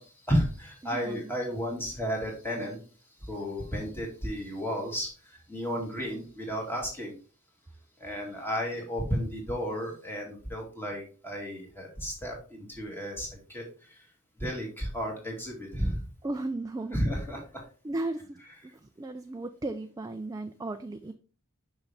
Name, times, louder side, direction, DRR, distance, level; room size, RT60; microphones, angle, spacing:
voice 1, 0.0-2.8 3.2-7.1 8.0-14.1 14.4-16.1 16.9-17.4, equal, 10° left, 0 dB, 2.1 m, -33 dB
voice 2, 0.8-1.4 16.2-17.0 17.8-21.1, right 2 dB, 15° right, 7 dB, 0.3 m, -36 dB
6.1 x 5.5 x 3.3 m, 0.38 s
head